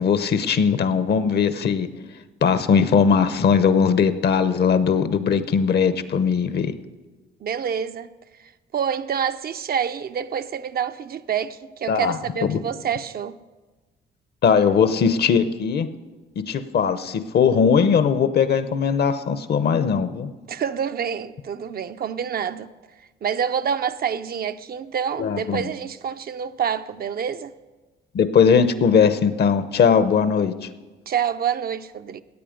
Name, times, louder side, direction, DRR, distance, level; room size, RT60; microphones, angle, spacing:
voice 1, 0.0-1.9 2.4-6.7 11.9-12.2 12.5-12.6 14.4-15.9 16.5-20.3 25.2-25.7 28.1-30.7, left 6 dB, 55° left, 0.8 m, -19 dB
voice 2, 7.4-8.1 8.4-13.3 20.5-22.7 23.2-27.5 31.1-32.2, right 8 dB, 50° right, 0.6 m, -27 dB
16.5 x 8.5 x 5.1 m
cardioid pair, 90°, 20 cm